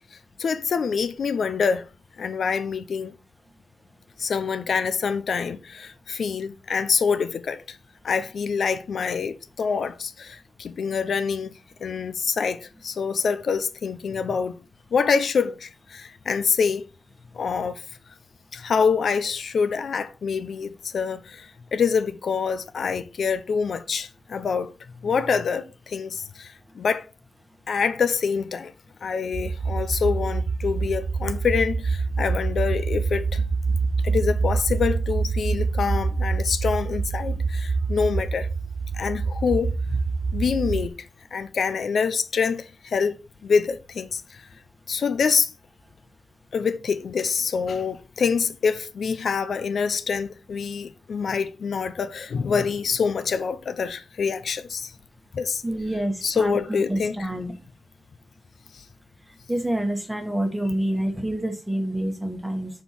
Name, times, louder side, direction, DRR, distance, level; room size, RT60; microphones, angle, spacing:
voice 1, 0.1-1.9 2.2-3.1 4.2-7.8 8.0-11.5 11.8-14.6 14.9-16.8 17.3-17.8 18.5-24.7 25.0-27.1 27.7-28.7 29.0-33.4 34.0-38.5 38.9-40.0 40.3-40.9 41.3-43.2 43.4-44.4 44.9-45.5 46.5-54.9 55.3-55.6 56.2-57.3 58.7-58.8, left 5 dB, 70° left, 0.4 m, -26 dB
sound 1, 29.3-40.9, right 4 dB, 55° right, 0.5 m, -26 dB
voice 2, 55.6-57.5 59.5-62.7, right 1 dB, 5° right, 1.2 m, -27 dB
5.5 x 4.4 x 4.2 m
wide cardioid pair, 150°, 0 cm